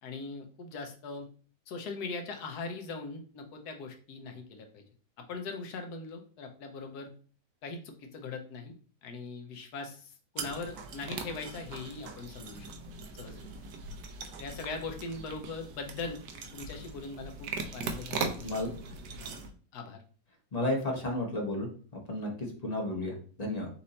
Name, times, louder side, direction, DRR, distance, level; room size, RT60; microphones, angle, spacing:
voice 1, 0.0-1.3 1.7-4.8 5.3-7.1 7.6-8.7 9.0-12.7 13.1-13.5 14.4-16.2 16.5-18.6 19.2-19.4 19.7-20.0, left 4 dB, 65° left, 4 dB, 1.2 m, -40 dB
sound 1, 10.4-19.5, right 4 dB, 70° right, 1.0 m, -40 dB
voice 2, 20.5-21.7 22.1-23.7, left 1 dB, 35° left, 0 dB, 0.6 m, -32 dB
4.3 x 2.6 x 4.0 m, 0.41 s
omnidirectional pair, 2.0 m